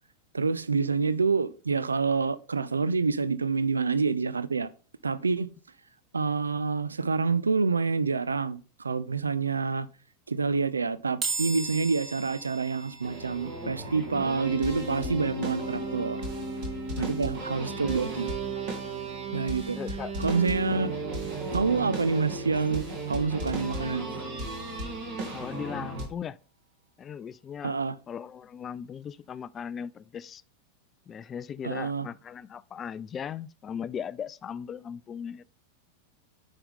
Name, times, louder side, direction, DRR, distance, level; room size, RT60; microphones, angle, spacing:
voice 1, 0.3-4.7 5.0-5.5 6.1-9.9 10.3-16.2 17.0-18.3 19.3-19.8 20.2-20.9 21.5-24.1 27.6-28.0 31.6-32.1, right 4 dB, 75° right, 0.4 m, -27 dB
sound 1, 11.2-24.5, right 4 dB, 35° right, 2.3 m, -43 dB
sound 2, 13.0-26.1, right 2 dB, 50° right, 2.9 m, -34 dB
voice 2, 19.7-20.1 25.3-26.4 27.0-27.8 28.1-30.4 31.1-35.4, left 8 dB, 25° left, 0.3 m, -38 dB
9.8 x 5.4 x 3.7 m
figure-of-eight pair, 90°, 0 cm